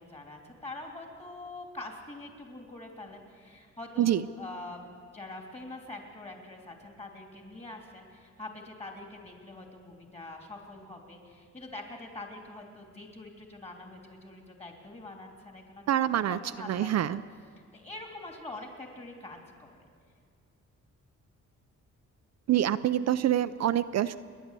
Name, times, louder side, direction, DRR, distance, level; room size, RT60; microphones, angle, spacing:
voice 1, 0.0-4.8 5.1-17.2 17.7-19.9, left 2 dB, 20° left, 2 dB, 3.1 m, -44 dB
voice 2, 15.9-16.4 16.7-17.2 22.5-24.2, right 11 dB, 60° right, 12 dB, 0.5 m, -26 dB
29.5 x 11.0 x 8.2 m, 2.1 s
wide cardioid pair, 155°, 30 cm